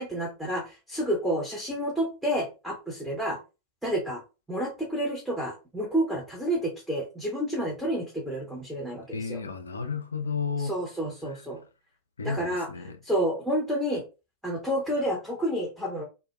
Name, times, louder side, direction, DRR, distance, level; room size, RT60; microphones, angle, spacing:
voice 1, 0.0-3.4 3.8-4.2 4.5-9.4 10.7-11.6 12.2-12.7 13.0-14.0 14.4-16.0, equal, 5° right, 0.7 m, -29 dB
voice 2, 9.1-10.8 11.3-11.4 12.2-13.0, left 5 dB, 75° left, 0.4 m, -32 dB
2.1 x 2.1 x 2.9 m
figure-of-eight pair, 90°, 0 cm